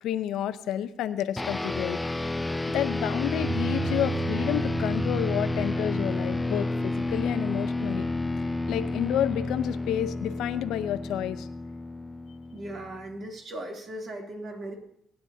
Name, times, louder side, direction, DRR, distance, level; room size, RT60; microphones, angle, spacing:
voice 1, 0.0-2.3 2.7-8.1 8.7-11.5, left 11 dB, 85° left, 12 dB, 0.6 m, -30 dB
sound 1, 1.4-13.0, left 2 dB, 15° left, 0.4 m, -30 dB
Bass guitar, 3.4-9.7, right 6 dB, 40° right, 1.1 m, -38 dB
voice 2, 12.5-14.8, right 1 dB, 55° right, 0 dB, 2.8 m, -38 dB
20.0 x 9.9 x 2.8 m, 0.71 s
cardioid pair, 90°, 0 cm